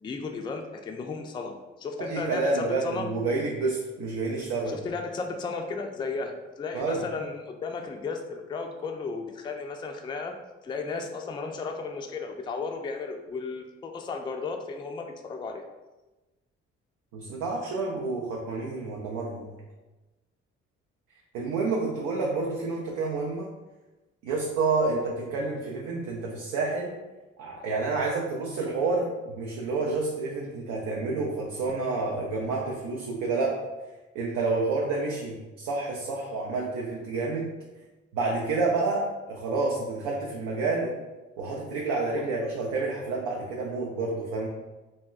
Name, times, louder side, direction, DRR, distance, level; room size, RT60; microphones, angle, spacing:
voice 1, 0.0-3.1 4.7-10.4 10.6-15.6 42.2-42.3, left 4 dB, 15° left, 3 dB, 0.3 m, -34 dB
voice 2, 2.0-4.8 6.7-7.0 17.1-19.5 21.3-23.5 24.2-27.0 27.4-33.6 34.1-37.5 38.1-40.9 41.4-44.5, right 3 dB, 80° right, -2 dB, 0.5 m, -29 dB
3.4 x 2.1 x 2.4 m, 1.1 s
hypercardioid pair, 55°, 30 cm